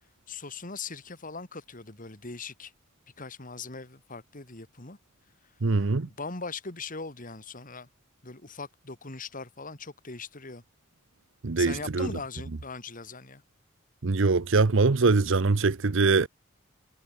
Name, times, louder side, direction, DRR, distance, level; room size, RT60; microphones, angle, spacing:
voice 1, 0.3-2.7 3.2-5.0 6.1-7.9 8.2-10.6 11.6-13.4, left 4 dB, 40° left, 2.6 m, -40 dB
voice 2, 5.6-6.1 11.4-12.1 14.0-16.3, right 3 dB, 65° right, 0.8 m, -23 dB
head